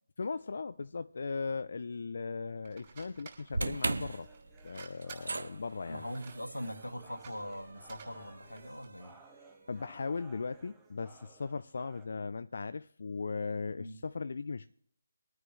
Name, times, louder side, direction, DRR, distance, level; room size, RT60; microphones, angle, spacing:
voice 1, 0.2-4.3 4.6-6.0 9.7-14.7, left 4 dB, 55° left, 0.4 m, -38 dB
sound 1, 2.6-9.0, right 6 dB, 35° right, 5.7 m, -55 dB
sound 2, 3.5-9.8, right 3 dB, 65° right, 0.9 m, -40 dB
sound 3, 4.0-12.0, right 3 dB, 5° right, 1.2 m, -59 dB
voice 2, 5.9-9.2 13.8-14.0, equal, 90° left, 1.9 m, -42 dB
23.5 x 9.5 x 3.2 m
figure-of-eight pair, 150°, 0 cm